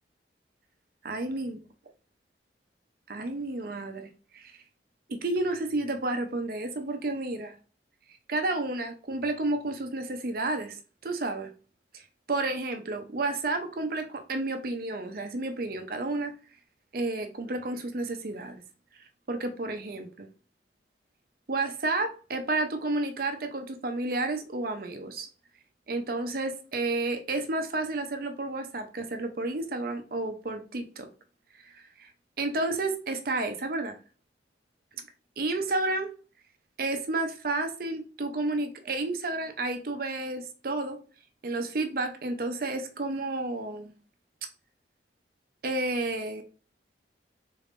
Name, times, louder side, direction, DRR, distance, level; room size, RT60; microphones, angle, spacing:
voice 1, 1.0-1.6 3.1-4.6 5.1-7.6 8.3-11.5 11.9-12.0 12.3-16.3 16.9-18.6 19.3-20.3 21.5-25.3 25.9-31.1 31.6-32.1 32.4-34.0 35.4-36.1 36.8-41.0 41.4-43.9 45.6-46.4, right 2 dB, 50° right, 0.6 m, -31 dB
3.8 x 3.6 x 2.5 m
head